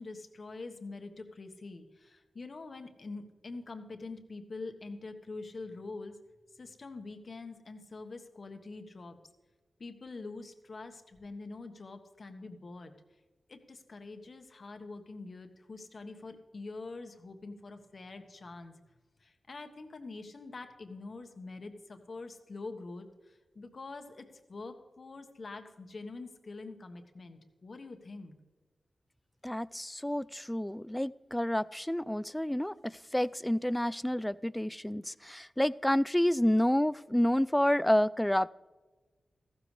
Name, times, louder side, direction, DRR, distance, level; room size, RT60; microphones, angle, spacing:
voice 1, 0.0-6.2 6.5-9.2 9.8-12.9 13.5-18.7 19.2-28.4, left 3 dB, 55° left, 6 dB, 1.4 m, -45 dB
voice 2, 29.4-38.5, left 1 dB, 10° left, 19 dB, 0.3 m, -29 dB
15.0 x 13.0 x 3.3 m, 1.2 s
cardioid pair, 60°, 0 cm